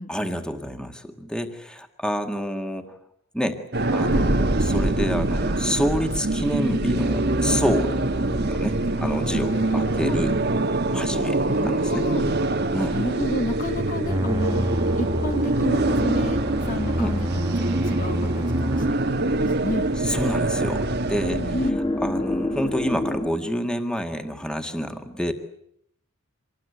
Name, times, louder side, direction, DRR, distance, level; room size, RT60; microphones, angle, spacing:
voice 1, 0.1-2.9 3.3-3.6 3.9-7.9 8.5-10.4 10.9-12.1 12.7-13.0 17.0-17.2 20.0-21.4 22.0-25.3, equal, 5° left, 6 dB, 1.9 m, -28 dB
sound 1, 3.7-21.7, right 2 dB, 50° right, 1.4 m, -24 dB
sound 2, 6.9-8.8 14.1-18.9, right 1 dB, 15° right, 1.2 m, -29 dB
voice 2, 9.0-10.2 11.5-12.3 12.9-14.7 15.0-16.4 16.6-19.9 21.2-21.8, left 1 dB, 40° left, 6 dB, 1.8 m, -31 dB
sound 3, 17.1-23.3, left 1 dB, 20° left, 1.9 m, -31 dB
26.5 x 20.0 x 9.3 m, 0.73 s
head